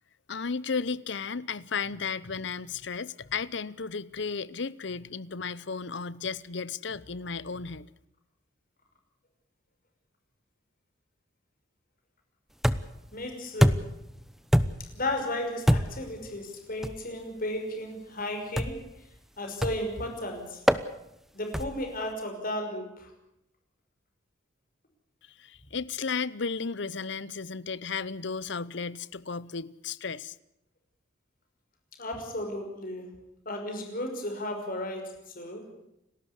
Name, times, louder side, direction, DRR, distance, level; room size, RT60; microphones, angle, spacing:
voice 1, 0.3-7.9 25.4-30.4, left 5 dB, 60° left, 0.8 m, -34 dB
sound 1, 12.6-13.1 13.6-14.1 14.5-15.0 15.7-16.1 16.8-17.0 18.6-18.9 19.6-20.0 20.7-20.9 21.5-21.9, equal, ahead, 0.8 m, -25 dB
voice 2, 13.1-13.9 14.9-18.8 19.4-20.6 21.3-23.1 32.0-33.1 33.5-35.7, left 1 dB, 45° left, 5.8 m, -34 dB
30.0 x 13.0 x 8.3 m
head